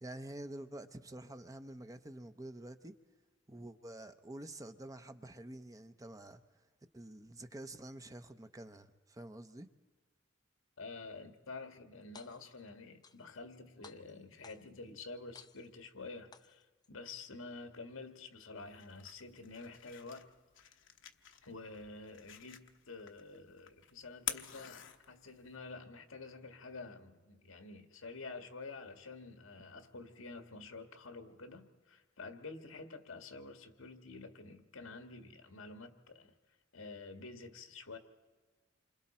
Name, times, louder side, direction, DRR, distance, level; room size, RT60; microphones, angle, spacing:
voice 1, 0.0-2.9 3.5-6.4 6.9-9.7, right 1 dB, 15° right, 0.7 m, -48 dB
voice 2, 10.8-20.3 20.6-20.8 21.4-36.3 36.7-38.0, left 3 dB, 85° left, 1.7 m, -49 dB
sound 1, 12.0-12.6 13.0-13.6 13.8-14.8 15.3-15.9 16.3-16.9, left 5 dB, 20° left, 0.6 m, -58 dB
sound 2, 18.6-25.6, left 11 dB, 65° left, 1.0 m, -48 dB
28.0 x 25.5 x 4.3 m
head